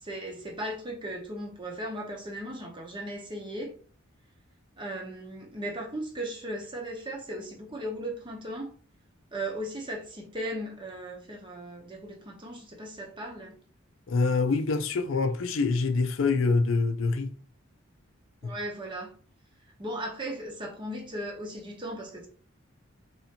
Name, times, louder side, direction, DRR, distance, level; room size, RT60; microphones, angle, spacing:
voice 1, 0.0-3.7 4.8-8.7 9.3-13.6 18.4-19.1 19.8-22.3, right 1 dB, 25° right, 0.9 m, -37 dB
voice 2, 14.1-17.3 18.4-18.5, left 4 dB, 70° left, 0.4 m, -25 dB
3.1 x 2.7 x 4.2 m
head